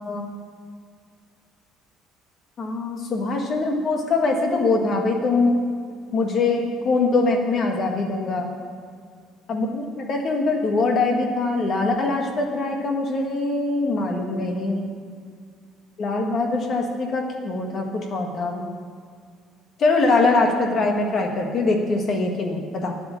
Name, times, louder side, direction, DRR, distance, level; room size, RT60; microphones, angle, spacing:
voice 1, 2.6-5.6 6.1-8.5 9.5-14.9 16.0-18.6 19.8-23.0, left 3 dB, 35° left, 2 dB, 1.5 m, -23 dB
9.9 x 8.2 x 8.4 m, 2.1 s
cardioid pair, 175°, 0 cm